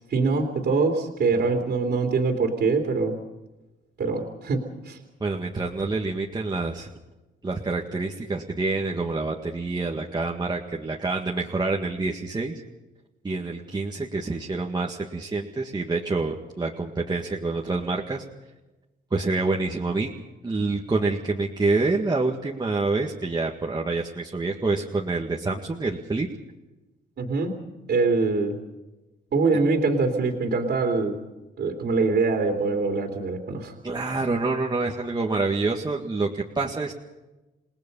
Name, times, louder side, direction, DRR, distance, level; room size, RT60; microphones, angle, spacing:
voice 1, 0.1-3.2 4.0-5.0 27.2-27.5 27.9-28.6 29.3-31.2 31.6-33.7, right 4 dB, 55° right, 2 dB, 3.1 m, -24 dB
voice 2, 5.2-6.9 7.4-12.6 13.2-18.2 19.1-20.1 20.4-26.3 33.8-36.9, right 3 dB, 20° right, -1 dB, 1.8 m, -27 dB
28.0 x 19.0 x 5.5 m, 1.1 s
cardioid pair, 90°, 20 cm